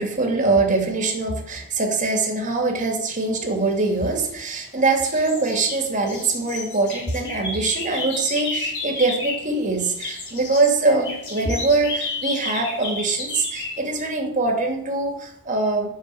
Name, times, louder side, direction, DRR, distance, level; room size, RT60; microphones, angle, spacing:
voice 1, 0.0-15.9, right 3 dB, 35° right, 1 dB, 2.7 m, -23 dB
sound 1, 3.9-4.7 5.0-9.5 9.8-13.8, left 3 dB, 55° left, 4.4 m, -32 dB
10.5 x 7.1 x 7.8 m, 0.74 s
head